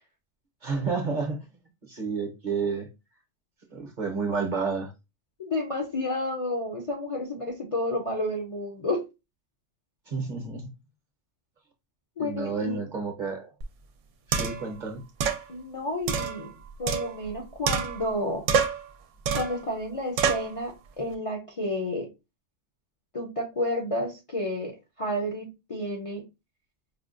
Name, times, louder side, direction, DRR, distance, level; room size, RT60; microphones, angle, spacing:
voice 1, 0.6-1.4 1.9-2.9 3.7-4.9 10.1-10.7 12.2-13.5 14.3-15.0, right 4 dB, 45° right, 0.8 m, -30 dB
voice 2, 5.4-9.0 12.2-12.8 15.5-16.5 16.8-18.4 19.3-22.1 23.1-26.2, left 1 dB, 40° left, 0.6 m, -31 dB
sound 1, 13.6-13.7 14.3-14.7 15.2-15.4 16.1-17.3 17.7-18.2 18.5-18.9 19.3-19.6 20.2-20.5, right 6 dB, 85° right, 0.9 m, -27 dB
5.0 x 2.2 x 2.4 m
omnidirectional pair, 1.3 m